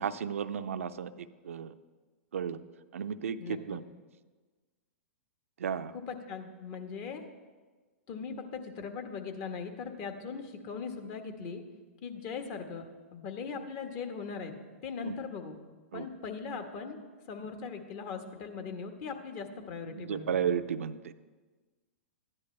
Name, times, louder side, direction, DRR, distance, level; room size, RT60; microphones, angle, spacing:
voice 1, 0.0-1.7 2.3-2.6 2.9-3.8 5.6-5.9 15.0-15.2 15.9-16.1 19.9-21.1, right 8 dB, 75° right, 11 dB, 0.5 m, -33 dB
voice 2, 3.4-3.8 5.9-7.2 8.1-11.6 12.0-14.5 14.8-15.5 15.9-17.0 17.3-20.4, left 5 dB, 40° left, 5 dB, 1.3 m, -40 dB
13.0 x 9.7 x 3.3 m, 1.3 s
hypercardioid pair, 110°, 7 cm